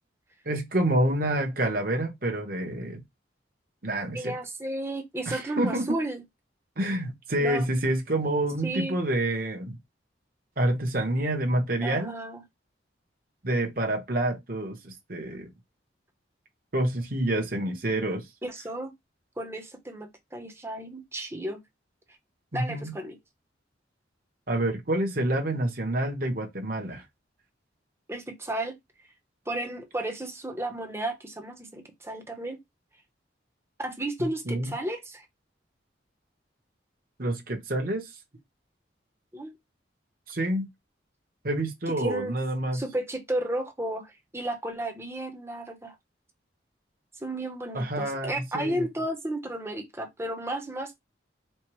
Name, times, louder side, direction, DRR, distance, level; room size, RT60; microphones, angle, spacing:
voice 1, 0.4-3.0 3.8-4.3 5.3-6.0 6.8-9.8 10.6-12.1 13.4-15.5 16.7-18.2 22.5-22.9 24.5-27.0 34.5-34.7 37.2-38.1 40.3-40.7 41.4-42.8 47.7-48.9, right 1 dB, 50° right, 1.1 m, -28 dB
voice 2, 4.1-6.2 7.4-7.7 8.6-9.0 11.8-12.4 18.4-18.9 19.4-21.6 22.5-23.2 28.1-28.7 29.5-32.6 33.8-35.2 39.3-39.5 42.0-42.4 42.7-45.9 47.2-51.0, right 1 dB, 15° right, 0.9 m, -33 dB
4.4 x 2.3 x 4.6 m
head